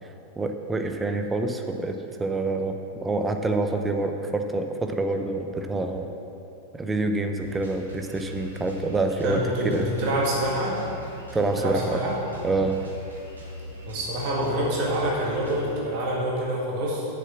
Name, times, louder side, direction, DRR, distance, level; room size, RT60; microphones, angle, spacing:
voice 1, 0.0-6.1 6.7-9.9 11.3-12.0 12.4-12.8, right 2 dB, 10° right, 5 dB, 0.7 m, -27 dB
Drum kit, 7.4-15.7, left 1 dB, 75° right, 1.9 m, -41 dB
voice 2, 9.2-10.8 11.6-12.2 13.9-17.1, right 1 dB, 45° right, -4 dB, 2.0 m, -26 dB
7.4 x 7.0 x 7.3 m, 2.9 s
figure-of-eight pair, 90°, 0 cm